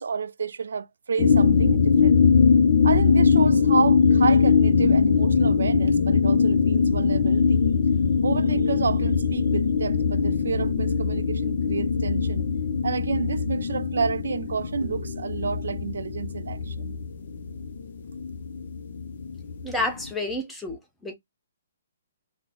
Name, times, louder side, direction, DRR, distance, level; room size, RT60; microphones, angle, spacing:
voice 1, 0.0-2.4 2.8-7.7 8.2-12.4 12.8-16.9, right 5 dB, 80° right, 0.3 m, -30 dB
sound 1, 1.2-20.1, left 5 dB, 55° left, 0.4 m, -21 dB
sound 2, 14.8-18.8, equal, 60° right, 0.8 m, -49 dB
voice 2, 19.6-21.1, left 2 dB, 5° left, 0.6 m, -30 dB
3.0 x 2.0 x 3.6 m
hypercardioid pair, 160°, 0 cm